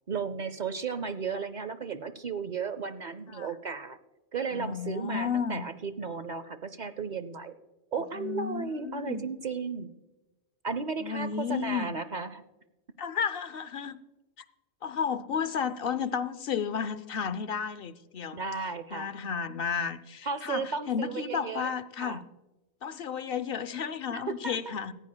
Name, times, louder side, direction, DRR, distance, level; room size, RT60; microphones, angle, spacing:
voice 1, 0.1-4.0 4.3-7.5 7.9-10.0 10.6-12.4 18.3-19.1 20.2-21.7 22.0-22.2 24.1-24.7, right 5 dB, 50° right, 13 dB, 0.6 m, -34 dB
voice 2, 4.5-5.6 8.1-9.2 11.0-11.9 13.0-14.0 14.8-18.4 18.9-22.2 22.8-24.9, left 7 dB, 65° left, 14 dB, 0.8 m, -32 dB
18.0 x 14.5 x 2.2 m, 1.1 s
omnidirectional pair, 1.1 m